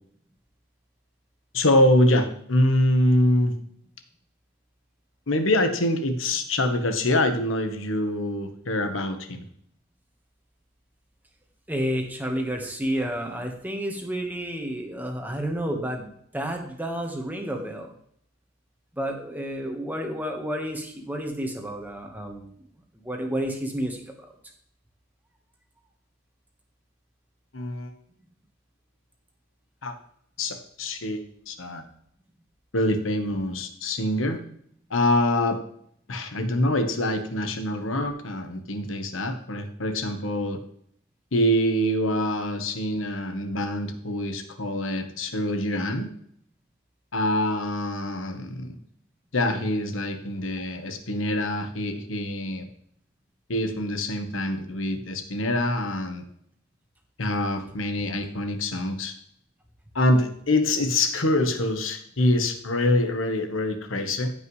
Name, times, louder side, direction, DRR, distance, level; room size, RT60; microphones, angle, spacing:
voice 1, 1.5-3.5 5.3-9.4 27.5-27.9 29.8-29.9 30.4-31.8 32.7-34.4 34.9-35.6 36.1-40.6 41.3-46.1 47.1-48.7 49.3-52.7 53.5-56.2 57.2-59.1 59.9-64.3, left 1 dB, 80° left, 7 dB, 1.2 m, -25 dB
voice 2, 11.7-17.9 19.0-22.4 23.0-24.3, equal, 10° right, 2 dB, 1.3 m, -30 dB
15.0 x 5.4 x 3.2 m, 0.67 s
head